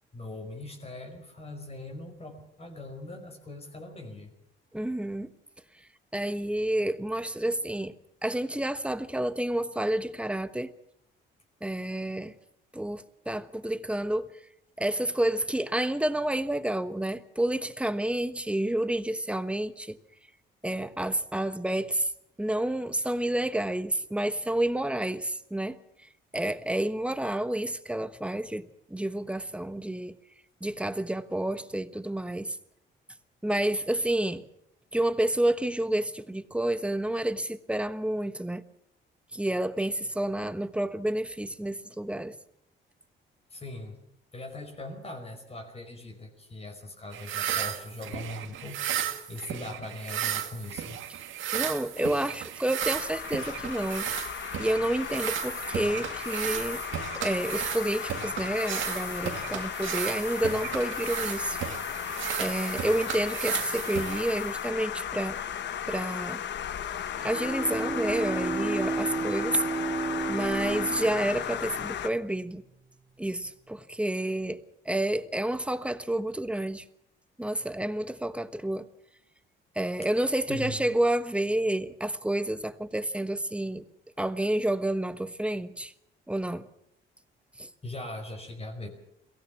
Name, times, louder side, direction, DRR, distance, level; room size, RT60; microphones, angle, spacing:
voice 1, 0.1-4.3 43.5-44.0 44.3-49.0 49.3-51.0 80.5-80.8 87.8-88.9, left 2 dB, 30° left, 5.3 m, -40 dB
voice 2, 4.7-5.3 6.1-7.9 8.2-10.7 11.6-12.3 12.7-14.4 14.8-19.9 20.6-22.1 22.4-25.8 26.3-30.1 30.6-32.6 33.4-34.4 34.9-38.6 39.3-42.3 51.5-56.8 57.2-61.6 62.4-65.4 65.9-66.4 67.2-69.6 70.3-72.6 73.2-76.8 77.4-78.9 79.7-83.8 84.2-85.9 86.3-86.7 87.6-87.7, right 1 dB, 5° right, 1.2 m, -29 dB
sound 1, 47.1-64.7, right 10 dB, 80° right, 1.8 m, -35 dB
sound 2, 52.8-72.1, left 9 dB, 65° left, 1.1 m, -35 dB
Bowed string instrument, 67.1-72.7, right 4 dB, 25° right, 3.9 m, -33 dB
22.5 x 17.0 x 7.2 m
cardioid pair, 90°, 20 cm